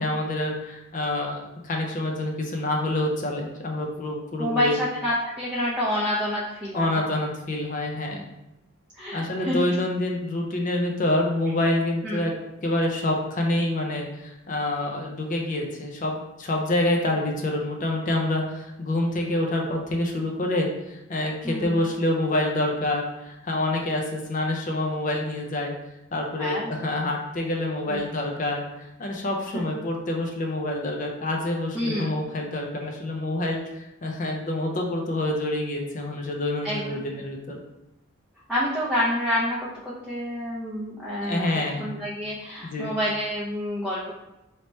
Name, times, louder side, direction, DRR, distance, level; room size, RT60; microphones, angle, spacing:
voice 1, 0.0-4.8 6.7-8.2 9.1-12.3 12.6-25.7 26.1-37.6 41.2-41.9 42.6-42.9, left 1 dB, 40° left, 1 dB, 0.5 m, -27 dB
voice 2, 4.4-7.0 9.0-9.6 12.0-12.2 21.4-21.8 26.4-26.8 27.9-28.0 29.5-29.6 31.7-32.1 36.6-37.0 38.5-41.4 41.8-44.1, equal, 5° right, -9 dB, 0.6 m, -28 dB
3.2 x 2.9 x 4.1 m, 0.94 s
head